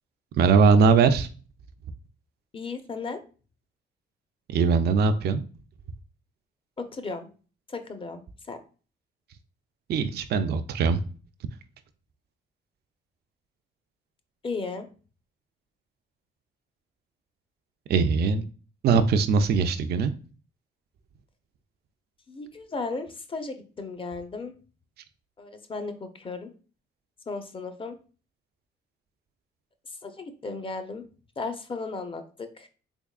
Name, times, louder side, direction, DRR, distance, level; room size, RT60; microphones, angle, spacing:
voice 1, 0.3-1.3 4.5-5.4 9.9-11.0 17.9-18.4 18.8-20.1, right 5 dB, 55° right, 8 dB, 0.4 m, -21 dB
voice 2, 2.5-3.2 6.8-7.3 7.7-8.2 8.5-8.6 14.4-14.9 22.3-24.5 25.4-26.5 27.3-28.0 30.0-31.0 31.4-32.7, left 4 dB, 25° left, 8 dB, 0.6 m, -35 dB
3.5 x 3.4 x 2.3 m, 0.37 s
cardioid pair, 90°, 20 cm